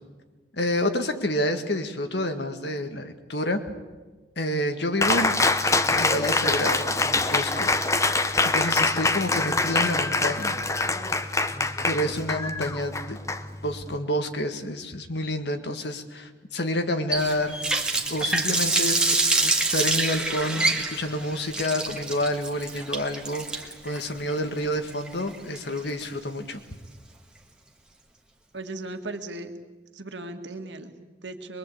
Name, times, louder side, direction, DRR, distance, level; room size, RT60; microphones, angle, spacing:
voice 1, 0.6-3.6 4.4-5.3 6.0-8.2 8.4-10.6 11.9-13.2 13.6-17.8 18.1-26.6, left 1 dB, 70° left, 7 dB, 1.9 m, -29 dB
Cheering, 5.0-14.0, left 3 dB, 15° left, 0.9 m, -24 dB
Water tap faucet, 17.1-26.0, right 2 dB, 5° right, 1.7 m, -26 dB
voice 2, 28.5-29.5 29.9-31.6, right 2 dB, 80° right, 6 dB, 2.0 m, -37 dB
23.5 x 23.0 x 8.6 m, 1.3 s
head